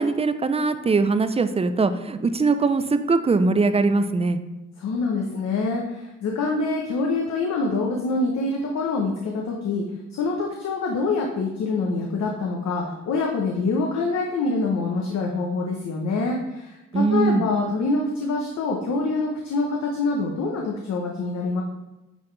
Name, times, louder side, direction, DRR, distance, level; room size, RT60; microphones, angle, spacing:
voice 1, 0.0-4.4 16.9-17.4, right 3 dB, 20° right, 10 dB, 0.5 m, -21 dB
voice 2, 4.8-9.9 10.1-21.6, left 3 dB, 60° left, 0 dB, 1.0 m, -25 dB
9.8 x 4.1 x 3.3 m, 0.99 s
cardioid pair, 90°, 30 cm